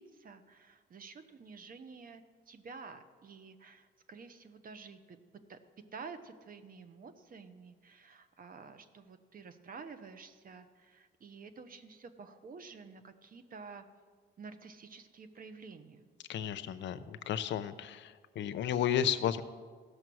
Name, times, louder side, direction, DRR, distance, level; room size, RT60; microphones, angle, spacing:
voice 1, 0.0-5.2 5.5-13.8 14.4-16.1, right 5 dB, 50° right, 9 dB, 1.0 m, -50 dB
voice 2, 16.3-19.4, left 9 dB, 75° left, 13 dB, 0.6 m, -33 dB
15.0 x 6.5 x 6.2 m, 1.5 s
cardioid pair, 85°, 19 cm